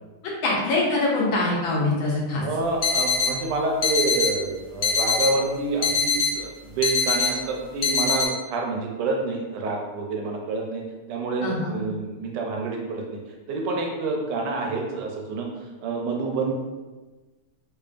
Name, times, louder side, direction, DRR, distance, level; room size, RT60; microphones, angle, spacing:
voice 1, 0.4-2.4 11.4-11.7, left 2 dB, 70° left, -4 dB, 1.4 m, -23 dB
voice 2, 2.4-10.8 11.1-13.2 13.5-15.5 15.8-16.5, right 3 dB, 75° right, 0 dB, 1.0 m, -28 dB
sound 1, 2.8-3.3 3.8-4.3 4.8-5.3 5.8-6.3 6.8-7.3 7.8-8.3, left 4 dB, 90° left, 1.6 m, -23 dB
5.0 x 2.3 x 2.5 m, 1.2 s
omnidirectional pair, 2.4 m